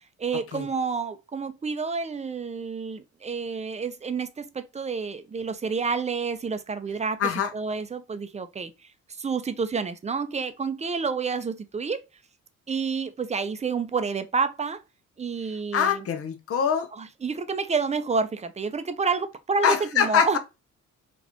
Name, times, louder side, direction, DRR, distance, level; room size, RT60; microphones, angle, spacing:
voice 1, 0.2-7.2 7.5-8.9 9.2-12.0 12.7-14.8 15.2-16.1 16.9-20.4, right 5 dB, 20° right, 0.6 m, -29 dB
voice 2, 15.7-16.9 19.6-20.4, left 7 dB, 50° left, 0.8 m, -23 dB
4.0 x 2.5 x 2.9 m
cardioid pair, 90°, 30 cm